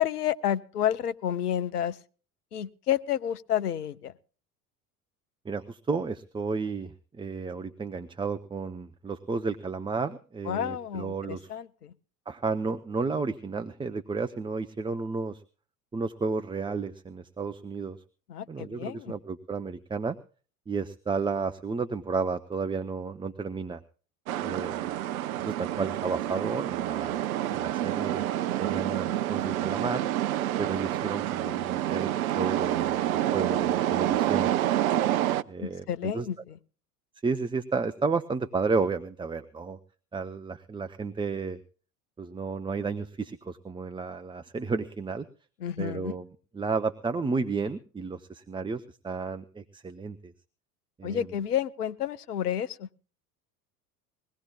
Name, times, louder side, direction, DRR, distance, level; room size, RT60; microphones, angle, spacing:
voice 1, 0.0-2.0 2.5-4.1 10.5-11.9 18.3-19.1 35.6-36.6 45.6-46.1 51.0-52.9, left 10 dB, 80° left, 15 dB, 0.8 m, -30 dB
voice 2, 5.4-11.5 12.3-15.4 15.9-18.0 18.5-20.2 20.7-23.8 24.4-25.0 25.4-27.2 27.5-28.3 28.6-30.0 30.6-34.5 35.5-36.3 37.2-39.8 40.1-41.6 42.2-45.3 45.8-46.2 46.5-50.3 51.0-51.3, right 4 dB, 10° right, 8 dB, 0.7 m, -32 dB
sound 1, 24.3-35.4, right 13 dB, 65° right, 0.6 m, -28 dB
21.5 x 17.0 x 2.3 m, 0.39 s
figure-of-eight pair, 75°, 45 cm